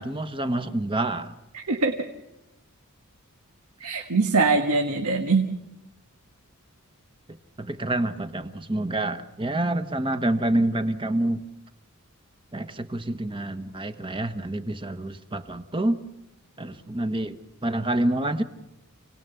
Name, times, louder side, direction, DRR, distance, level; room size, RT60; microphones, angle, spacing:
voice 1, 0.0-1.3 7.6-11.4 12.5-16.0 16.6-18.4, right 1 dB, 20° right, 9 dB, 1.2 m, -27 dB
voice 2, 1.5-1.9 3.8-5.5, right 3 dB, 90° right, 4 dB, 1.6 m, -22 dB
28.5 x 19.0 x 7.0 m, 0.94 s
head